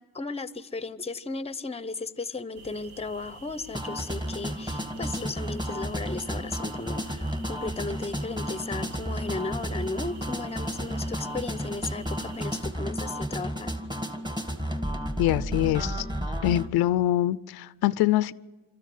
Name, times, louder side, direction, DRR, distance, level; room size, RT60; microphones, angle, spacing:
voice 1, 0.0-13.7, left 3 dB, 15° left, 0.8 m, -35 dB
sound 1, 2.5-12.6, right 2 dB, 80° right, 2.9 m, -49 dB
sound 2, 3.7-16.7, equal, 10° right, 1.7 m, -32 dB
voice 2, 15.2-16.1 16.4-18.3, left 14 dB, 80° left, 0.6 m, -24 dB
25.5 x 13.5 x 9.4 m
cardioid pair, 90°, 37 cm